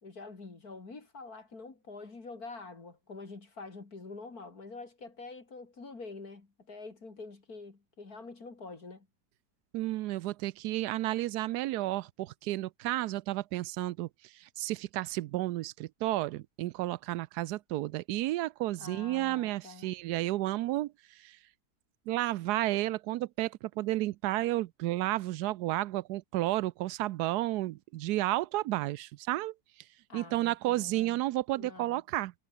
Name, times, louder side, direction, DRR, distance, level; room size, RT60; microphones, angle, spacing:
voice 1, 0.0-9.1 18.8-19.9 30.1-31.2 31.6-32.0, left 3 dB, 50° left, 3.6 m, -46 dB
voice 2, 9.7-21.4 22.1-29.5 30.1-32.3, right 16 dB, 75° right, 0.9 m, -32 dB
omnidirectional pair, 2.1 m